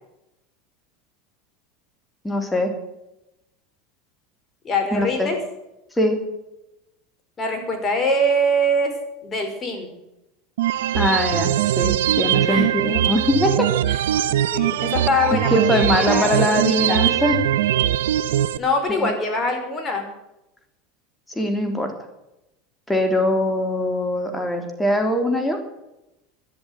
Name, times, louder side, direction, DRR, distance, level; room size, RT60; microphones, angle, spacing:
voice 1, 2.2-2.7 4.9-5.3 6.0-6.2 10.9-14.0 15.5-17.4 18.9-19.1 21.3-21.9 22.9-25.6, left 1 dB, 10° left, 5 dB, 3.3 m, -22 dB
voice 2, 4.6-5.4 7.4-8.9 9.2-9.9 12.5-12.7 14.5-16.5 16.9-17.0 18.6-20.1, equal, 30° left, 4 dB, 5.0 m, -23 dB
sound 1, 10.6-18.6, right 11 dB, 85° right, 0.7 m, -21 dB
13.0 x 10.5 x 9.5 m, 0.91 s
hypercardioid pair, 100°, 0 cm